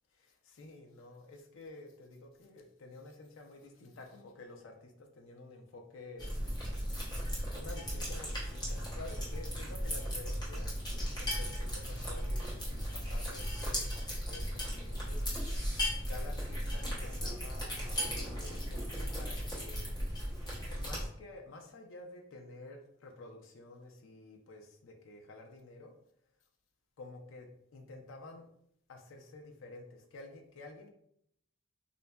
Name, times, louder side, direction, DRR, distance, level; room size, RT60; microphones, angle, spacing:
voice 1, 0.2-6.3 7.5-10.7 11.2-13.9 14.3-15.3 16.1-19.9 20.7-25.9 27.0-27.5 27.7-28.4 28.9-30.9, left 2 dB, 70° left, 3 dB, 0.4 m, -50 dB
sound 1, 6.2-21.1, equal, 20° left, 0.7 m, -36 dB
3.7 x 2.1 x 2.2 m, 0.71 s
head